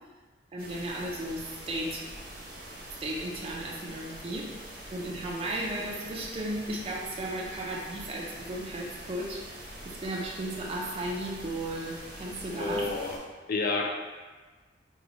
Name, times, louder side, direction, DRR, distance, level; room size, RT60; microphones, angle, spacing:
voice 1, 0.5-2.0 3.0-4.5 4.9-9.6 9.8-12.9, right 1 dB, 35° right, -2 dB, 0.5 m, -35 dB
sound 1, 0.6-13.2, right 1 dB, 55° right, 0.9 m, -44 dB
voice 2, 12.6-13.9, left 3 dB, 55° left, 2 dB, 0.3 m, -30 dB
2.9 x 2.3 x 4.0 m, 1.3 s
head